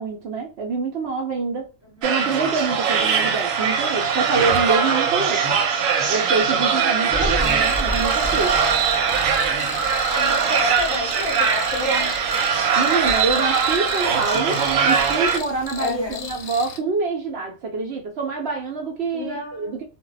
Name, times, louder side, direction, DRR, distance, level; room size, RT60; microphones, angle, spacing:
voice 1, 0.0-1.7 2.0-5.4 6.1-8.6 12.8-16.0 16.3-19.8, right 4 dB, 65° right, 0.7 m, -26 dB
sound 1, 2.0-15.4, right 6 dB, 85° right, 1.0 m, -21 dB
Thunder, 7.1-12.5 12.9-14.3 14.6-16.3, equal, 30° right, 0.7 m, -34 dB
Cricket, 7.4-16.8, left 6 dB, 65° left, 0.8 m, -36 dB
voice 2, 10.1-12.2 15.8-16.4 19.1-19.8, left 2 dB, 25° left, 0.6 m, -30 dB
2.2 x 2.0 x 3.8 m
omnidirectional pair, 1.3 m